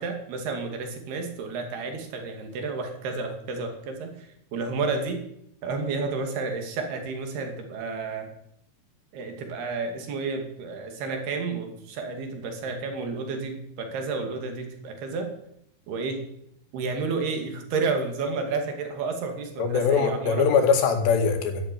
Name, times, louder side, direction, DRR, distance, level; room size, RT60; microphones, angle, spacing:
voice 1, 0.0-5.2 5.6-8.3 9.1-15.3 15.9-16.2 16.7-20.5, right 4 dB, 70° right, 4 dB, 4.4 m, -31 dB
voice 2, 19.6-21.6, left 6 dB, 85° left, 5 dB, 4.3 m, -22 dB
12.0 x 12.0 x 9.2 m, 0.75 s
omnidirectional pair, 4.8 m